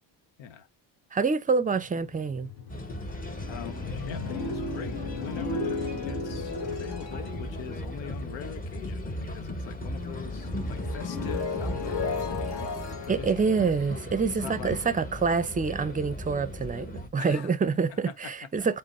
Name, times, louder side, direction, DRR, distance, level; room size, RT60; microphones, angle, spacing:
voice 1, 1.1-2.5 13.1-18.8, right 5 dB, 20° right, 0.5 m, -26 dB
sound 1, 1.6-9.4 9.7-14.8, left 4 dB, 60° left, 1.4 m, -36 dB
sound 2, 2.7-17.1, left 1 dB, 20° left, 0.9 m, -37 dB
voice 2, 3.5-13.7 14.3-14.8 17.2-17.5 17.9-18.3, left 8 dB, 90° left, 0.8 m, -43 dB
5.2 x 2.1 x 4.1 m
cardioid pair, 100°, 44 cm